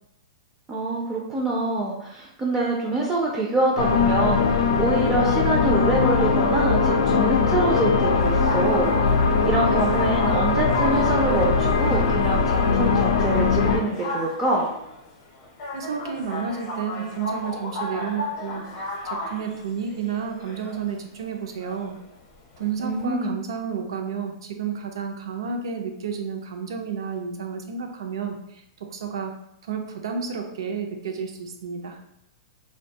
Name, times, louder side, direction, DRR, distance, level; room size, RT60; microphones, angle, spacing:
voice 1, 0.7-14.7 22.8-23.4, right 2 dB, 15° right, -2 dB, 0.3 m, -25 dB
sound 1, 3.8-13.8, left 5 dB, 85° left, 0.4 m, -21 dB
sound 2, 8.2-23.0, left 2 dB, 40° left, 0.6 m, -35 dB
voice 2, 15.7-18.7 19.0-22.0 22.6-28.6 28.9-29.3 29.6-32.0, right 6 dB, 80° right, 4 dB, 0.5 m, -31 dB
2.5 x 2.2 x 2.7 m, 0.81 s
supercardioid pair, 160°, 3 cm